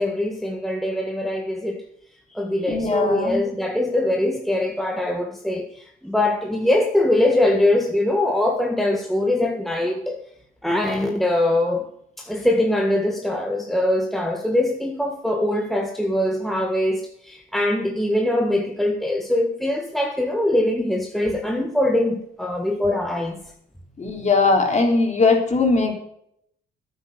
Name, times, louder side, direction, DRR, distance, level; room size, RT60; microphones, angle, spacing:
voice 1, 0.0-1.8 2.3-10.2 10.6-11.9 12.2-23.4, left 1 dB, ahead, 1.6 m, -22 dB
voice 2, 2.7-3.4 24.0-25.9, left 3 dB, 35° left, 3.8 m, -19 dB
12.0 x 9.2 x 6.8 m
cardioid pair, 90°, 20 cm